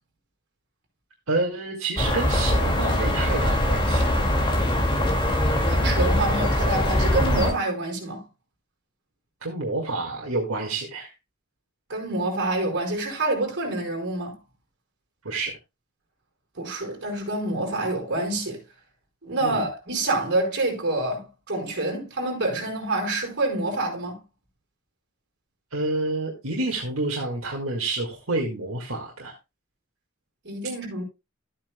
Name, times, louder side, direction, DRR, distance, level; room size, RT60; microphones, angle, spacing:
voice 1, 1.3-4.1 9.4-11.1 15.2-15.6 19.4-19.6 25.7-29.3, right 2 dB, 75° right, 1.9 m, -28 dB
sound 1, 2.0-7.5, left 1 dB, 25° left, 2.3 m, -22 dB
voice 2, 5.7-8.2 11.9-14.4 16.5-18.6 19.2-24.2 30.4-31.0, right 2 dB, 55° right, 4.9 m, -27 dB
13.5 x 8.7 x 2.3 m
head